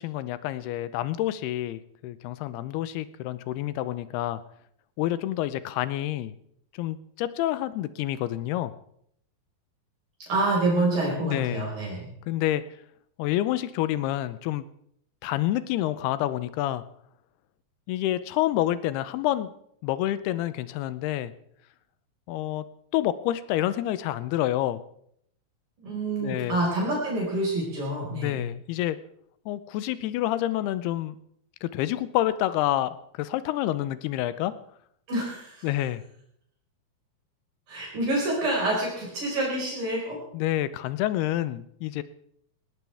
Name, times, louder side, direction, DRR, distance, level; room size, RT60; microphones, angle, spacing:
voice 1, 0.0-4.4 5.0-6.3 6.8-8.7 11.2-11.7 12.3-12.6 13.2-14.7 15.2-16.8 17.9-19.5 19.8-21.3 22.3-22.6 22.9-24.8 26.2-26.6 28.1-29.0 29.5-31.2 31.6-34.5 35.6-36.0 40.3-42.0, left 14 dB, 90° left, 14 dB, 2.7 m, -28 dB
voice 2, 10.3-12.0 25.8-28.4 35.1-35.7 37.7-40.2, right 2 dB, 65° right, -4 dB, 6.8 m, -27 dB
19.5 x 18.0 x 3.5 m, 0.68 s
omnidirectional pair, 4.5 m